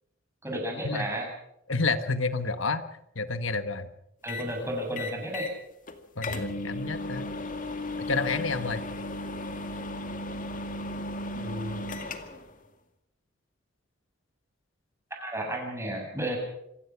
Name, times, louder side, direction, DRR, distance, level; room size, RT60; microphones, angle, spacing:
voice 1, 0.4-1.3 4.2-5.5 11.3-11.8 15.2-16.4, right 1 dB, 15° right, 1 dB, 7.4 m, -33 dB
voice 2, 1.7-2.8 3.1-3.9 6.2-7.2 8.1-8.8, left 3 dB, 85° left, 10 dB, 1.4 m, -29 dB
sound 1, 4.3-4.5 5.0-5.6 5.9-6.0 6.2-12.5, left 2 dB, 45° left, 2.2 m, -35 dB
26.5 x 17.0 x 6.0 m, 0.81 s
head